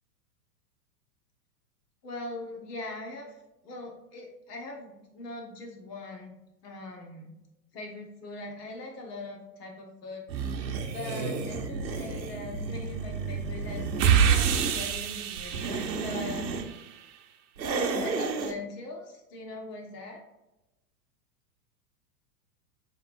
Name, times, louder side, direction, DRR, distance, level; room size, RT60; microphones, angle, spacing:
voice 1, 2.0-3.3 3.6-6.3 6.6-7.3 7.7-10.2 10.9-16.5 18.0-20.2, left 2 dB, 70° left, 1 dB, 1.5 m, -41 dB
sound 1, 10.3-14.7 15.4-16.7 17.6-18.6, right 4 dB, 85° right, 0.8 m, -33 dB
sound 2, 14.0-16.7, right 7 dB, 50° right, 0.8 m, -26 dB
5.5 x 3.6 x 2.6 m, 0.97 s
hypercardioid pair, 110°, 50 cm